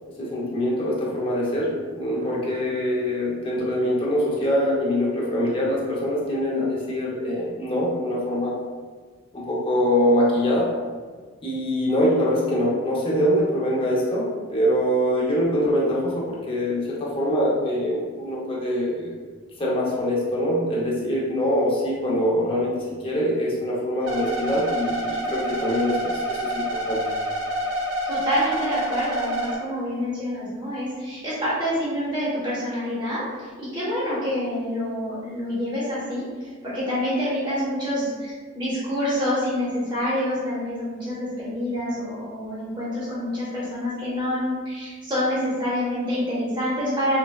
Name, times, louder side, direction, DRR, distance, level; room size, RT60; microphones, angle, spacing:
voice 1, 0.2-8.6 9.3-10.7 11.4-19.2 19.6-27.0, equal, 25° left, -5 dB, 0.6 m, -24 dB
sound 1, 24.0-29.6, right 1 dB, 70° right, 0.6 m, -27 dB
voice 2, 28.1-47.2, equal, 20° right, -10 dB, 0.7 m, -27 dB
3.8 x 2.1 x 2.2 m, 1.5 s
head